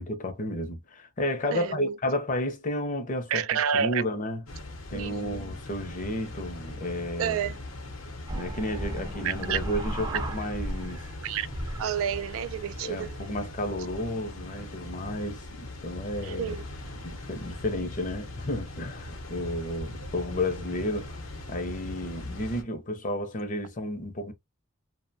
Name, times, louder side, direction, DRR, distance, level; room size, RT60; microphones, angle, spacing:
voice 1, 0.0-3.4 3.7-4.4 4.9-7.5 8.3-11.0 12.8-16.6 17.0-21.2 21.5-24.3, left 1 dB, 40° left, 0.6 m, -32 dB
voice 2, 1.5-2.0 3.3-4.0 4.9-5.5 7.2-7.6 9.2-9.6 11.2-11.5 11.8-13.2 16.2-16.7, right 8 dB, 85° right, 0.3 m, -30 dB
Water, 4.5-22.6, left 2 dB, 85° left, 0.7 m, -40 dB
sound 1, 8.3-11.2 11.4-13.5, right 1 dB, 20° right, 0.5 m, -36 dB
2.7 x 2.1 x 2.6 m
head